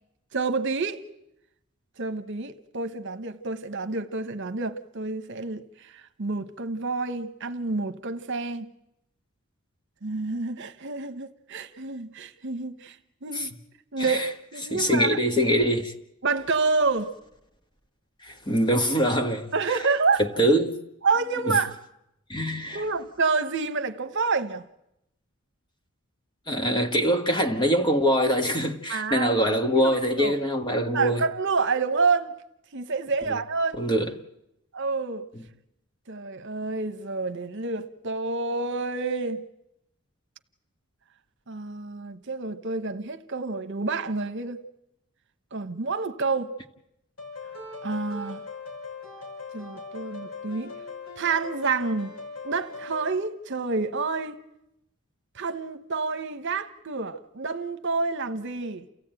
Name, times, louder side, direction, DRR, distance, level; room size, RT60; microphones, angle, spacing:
voice 1, 0.3-1.0 2.0-5.9 6.2-8.7 10.0-13.5 13.9-15.2 16.2-17.1 19.5-20.2 21.0-21.7 22.7-24.6 28.9-29.4 29.8-30.4 30.9-32.3 32.7-33.8 34.7-35.3 36.1-39.4 41.5-44.6 45.5-46.5 47.8-48.4 49.5-50.7 51.2-52.1 52.4-54.4 55.3-58.9, right 4 dB, 55° right, 1.1 m, -28 dB
voice 2, 14.0-14.3 14.7-15.9 18.2-19.5 20.2-20.8 21.4-21.6 22.3-22.8 26.5-31.2 33.3-33.4 33.8-34.1, equal, 20° left, 1.5 m, -23 dB
sound 1, 47.2-53.1, left 4 dB, 65° left, 6.0 m, -40 dB
29.0 x 16.0 x 9.0 m
head